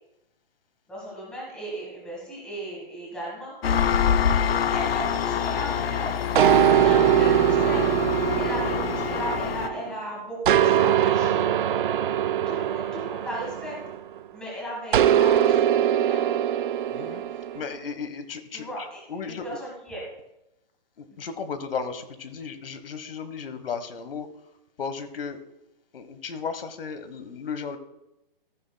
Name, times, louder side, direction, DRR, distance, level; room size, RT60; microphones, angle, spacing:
voice 1, 0.9-3.5 4.7-6.2 6.6-7.9 8.4-11.7 12.5-13.8 14.3-16.4 18.5-20.0 21.1-21.2, right 1 dB, 5° left, -4 dB, 1.6 m, -36 dB
Engine, 3.6-9.7, left 8 dB, 90° left, 0.7 m, -26 dB
sound 1, 6.4-9.9 10.5-14.2 14.9-17.6, right 10 dB, 60° right, 0.5 m, -22 dB
voice 2, 16.9-17.2 17.5-19.5 21.0-24.3 24.8-25.4 25.9-27.8, left 5 dB, 75° left, 10 dB, 1.4 m, -35 dB
14.0 x 9.8 x 2.3 m, 0.91 s
hypercardioid pair, 170°, 29 cm